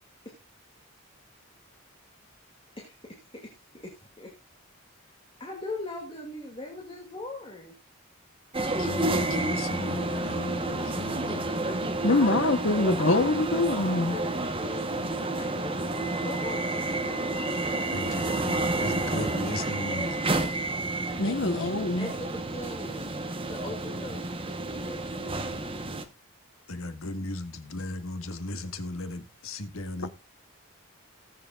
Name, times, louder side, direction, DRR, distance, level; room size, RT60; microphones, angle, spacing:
voice 1, 2.8-3.2 3.8-4.3 5.4-7.7 11.4-18.3 18.7-19.4 22.0-23.1 23.5-25.5, left 2 dB, 25° left, 2.4 m, -41 dB
sound 1, 8.5-26.0, right 2 dB, 25° right, 1.1 m, -30 dB
voice 2, 8.7-11.5 17.9-20.3 26.7-30.1, left 2 dB, 75° left, 1.5 m, -36 dB
voice 3, 12.0-14.2 21.2-22.1, left 2 dB, 60° left, 1.0 m, -24 dB
19.0 x 7.7 x 2.4 m
head